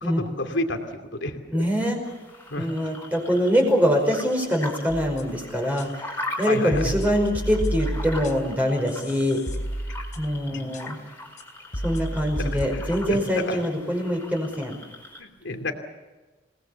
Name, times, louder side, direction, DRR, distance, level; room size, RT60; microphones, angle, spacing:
voice 1, 0.0-1.6 2.5-2.7 6.4-6.9 10.5-10.8 12.4-12.8 13.1-13.6 15.2-15.7, left 2 dB, 75° left, 6 dB, 2.7 m, -30 dB
voice 2, 1.5-2.0 2.6-9.4 10.2-11.0 11.8-14.8, equal, 10° right, 2 dB, 5.2 m, -24 dB
sound 1, 2.0-15.2, left 2 dB, 10° left, 4.6 m, -41 dB
sound 2, 4.9-5.4 5.8-5.9 6.4-8.6 8.9-10.4 10.7-10.8 11.4-11.5 11.7-13.1, right 1 dB, 40° left, 4.0 m, -31 dB
28.0 x 19.5 x 7.0 m, 1.2 s
head